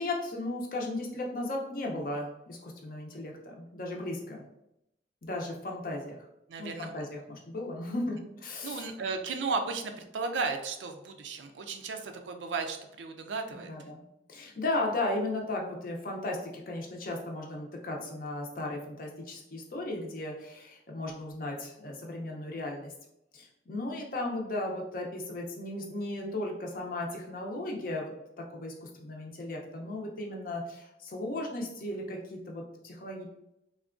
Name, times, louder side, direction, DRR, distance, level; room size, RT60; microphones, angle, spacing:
voice 1, 0.0-4.4 5.2-6.2 6.6-8.9 13.5-22.9 23.3-28.1 28.4-33.2, left 2 dB, 50° left, 0 dB, 0.5 m, -36 dB
voice 2, 6.5-7.0 8.6-13.7, right 4 dB, 85° right, 6 dB, 0.4 m, -35 dB
3.5 x 2.2 x 2.4 m, 0.85 s
head